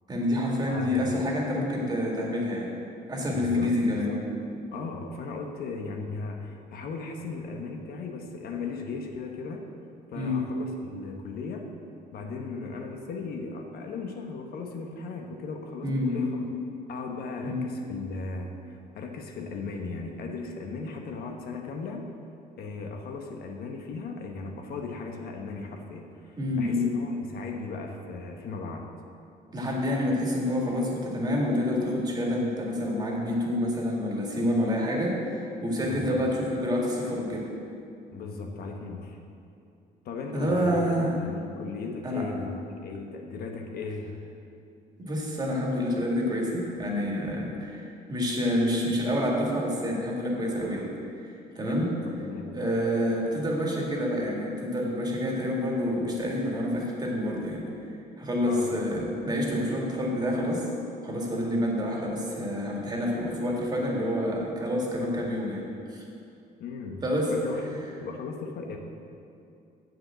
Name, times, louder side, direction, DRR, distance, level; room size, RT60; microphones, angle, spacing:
voice 1, 0.1-2.7 3.1-4.1 10.1-10.5 15.8-16.3 17.4-17.7 26.4-26.8 29.5-37.5 40.3-41.2 42.0-42.2 45.0-50.9 51.2-52.0 52.5-57.6 58.2-60.7 61.0-66.0 67.0-67.3, left 1 dB, 25° right, -2 dB, 2.0 m, -28 dB
voice 2, 0.7-1.1 3.3-4.2 4.7-9.6 10.1-11.7 12.1-16.5 16.9-22.0 22.6-28.9 35.8-36.2 38.1-39.2 40.0-44.1 51.7-52.5 58.4-58.7 66.6-67.0 67.3-68.8, left 4 dB, 65° left, 3 dB, 1.0 m, -37 dB
7.5 x 6.1 x 7.5 m, 2.6 s
cardioid pair, 110°, 17 cm